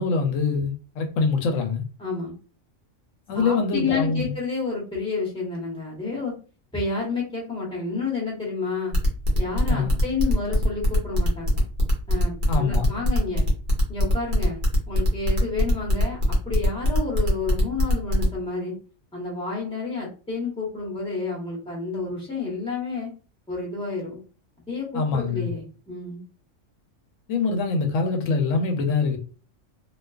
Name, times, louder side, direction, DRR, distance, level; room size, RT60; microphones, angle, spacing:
voice 1, 0.0-1.8 3.3-4.3 9.7-10.0 12.5-12.9 24.9-25.5 27.3-29.2, left 4 dB, 85° left, 1.0 m, -24 dB
voice 2, 2.0-2.3 3.3-6.3 6.7-8.9 9.3-11.6 12.1-13.5 13.9-14.6 14.9-16.2 16.4-18.7 19.1-23.1 23.5-24.2 24.7-26.2, left 4 dB, 5° left, 0.9 m, -30 dB
sound 1, 8.9-18.3, left 1 dB, 45° right, 0.9 m, -21 dB
2.4 x 2.3 x 2.3 m
omnidirectional pair, 1.3 m